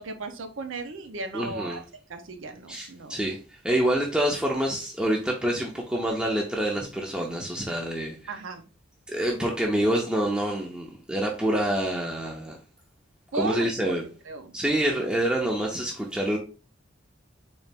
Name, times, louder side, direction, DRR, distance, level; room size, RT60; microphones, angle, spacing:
voice 1, 0.0-1.8 2.1-3.2 8.3-8.6 13.3-13.7 14.3-14.5, right 3 dB, 85° right, 7 dB, 0.7 m, -35 dB
voice 2, 1.3-1.8 2.7-3.4 3.6-8.2 9.1-12.5 13.3-14.0 14.5-16.4, right 1 dB, 5° right, -1 dB, 0.4 m, -27 dB
4.0 x 2.4 x 3.3 m, 0.34 s
head